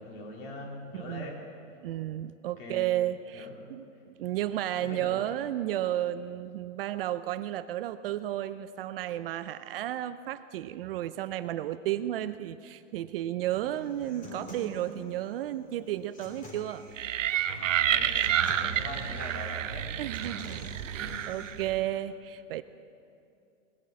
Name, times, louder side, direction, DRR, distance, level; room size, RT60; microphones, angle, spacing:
voice 1, 0.0-1.4 2.6-3.0 3.3-3.6 3.9-4.0 4.3-4.4 4.8-5.4 17.8-20.2 20.9-21.3, left 2 dB, 45° left, 0 dB, 3.5 m, -43 dB
voice 2, 0.9-1.3 1.8-16.8 20.0-22.6, right 13 dB, 50° right, 13 dB, 0.5 m, -33 dB
Human voice / Acoustic guitar, 13.5-21.5, equal, 20° left, 3.0 m, -47 dB
sound 1, 17.0-21.8, right 10 dB, 75° right, 0.9 m, -29 dB
18.5 x 9.0 x 7.4 m, 2.5 s
hypercardioid pair, 140°, 38 cm